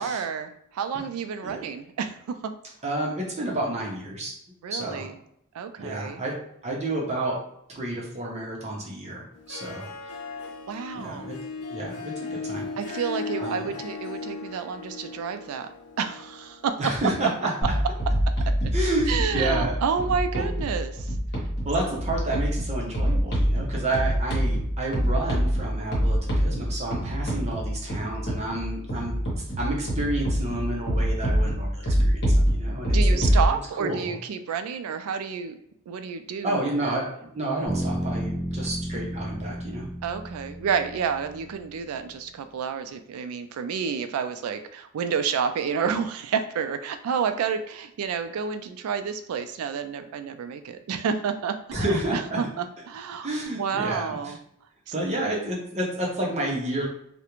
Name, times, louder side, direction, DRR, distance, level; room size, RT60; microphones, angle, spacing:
voice 1, 0.0-2.1 4.6-5.1 5.5-6.2 10.7-11.4 12.8-15.7 16.0-16.7 17.2-17.3 18.6-18.7 19.1-21.1 32.9-35.6 35.9-37.0 40.0-51.8 52.1-53.3 53.6-54.4, right 6 dB, 70° right, 8 dB, 0.3 m, -29 dB
voice 2, 2.8-4.3 4.7-5.1 5.8-6.4 6.6-7.4 7.7-9.9 10.9-11.3 11.7-12.7 13.4-13.7 16.8-17.5 18.7-19.8 20.3-20.5 21.6-29.2 29.6-33.0 33.8-34.1 36.4-37.1 37.3-39.9 51.7-52.4 53.2-54.3 54.9-56.9, right 1 dB, 30° right, -2 dB, 0.6 m, -30 dB
Harp, 9.3-17.9, left 4 dB, 75° left, 0.5 m, -37 dB
sound 1, 17.6-33.5, equal, 50° left, 1.0 m, -25 dB
sound 2, 37.7-41.6, equal, 10° left, 1.2 m, -32 dB
2.4 x 2.1 x 3.0 m, 0.72 s
head